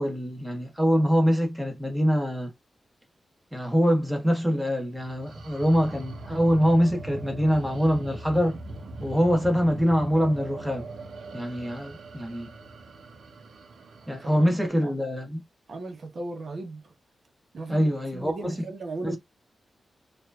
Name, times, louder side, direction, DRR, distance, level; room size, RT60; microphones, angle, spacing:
voice 1, 0.0-2.5 3.5-8.6 9.0-10.9 11.3-12.5 14.1-15.4 17.7-18.5 19.0-19.2, equal, 5° right, 1.3 m, -24 dB
sound 1, 5.0-14.7, right 2 dB, 85° right, 0.9 m, -41 dB
voice 2, 14.2-14.9 15.7-16.9 17.5-19.2, right 2 dB, 55° right, 1.2 m, -37 dB
4.6 x 2.7 x 2.5 m
wide cardioid pair, 165°, 0 cm